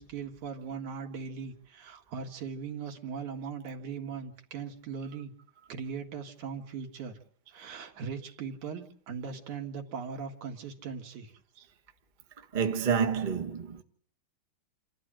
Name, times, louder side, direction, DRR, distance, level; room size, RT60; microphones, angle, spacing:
voice 1, 0.0-5.3 5.7-7.2 7.5-11.3, right 6 dB, 85° right, 3.5 m, -39 dB
voice 2, 12.5-13.8, right 6 dB, 35° right, 0.7 m, -28 dB
28.0 x 13.5 x 8.9 m
omnidirectional pair, 3.3 m